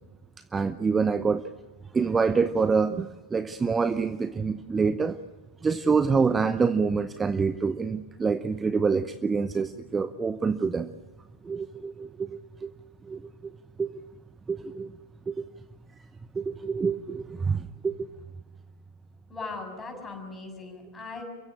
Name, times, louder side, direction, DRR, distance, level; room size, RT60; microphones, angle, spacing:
voice 1, 0.5-1.5 1.9-5.2 5.6-10.9 11.4-12.7 13.0-14.0 14.5-15.0 15.3-15.5 16.3-18.1, right 5 dB, 15° right, 12 dB, 0.8 m, -26 dB
voice 2, 19.3-21.2, left 3 dB, 15° left, 3 dB, 7.0 m, -39 dB
29.5 x 16.0 x 8.6 m, 1.3 s
figure-of-eight pair, 90°, 0 cm